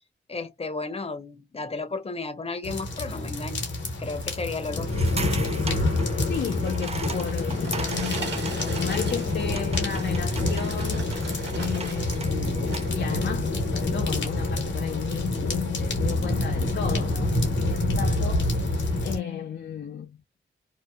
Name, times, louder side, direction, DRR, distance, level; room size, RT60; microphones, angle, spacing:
voice 1, 0.3-3.6 4.0-4.9, left 3 dB, 30° left, 0.8 m, -33 dB
sound 1, 2.6-19.2, left 2 dB, 85° left, 1.0 m, -27 dB
sound 2, 4.9-13.0, right 4 dB, 35° right, 0.5 m, -39 dB
voice 2, 6.3-11.1 11.6-18.5 19.0-20.2, left 8 dB, 70° left, 0.5 m, -34 dB
sound 3, 7.1-12.3 12.6-13.0 13.6-13.7, right 3 dB, 70° right, 1.2 m, -39 dB
2.7 x 2.1 x 2.3 m
cardioid pair, 60°, 19 cm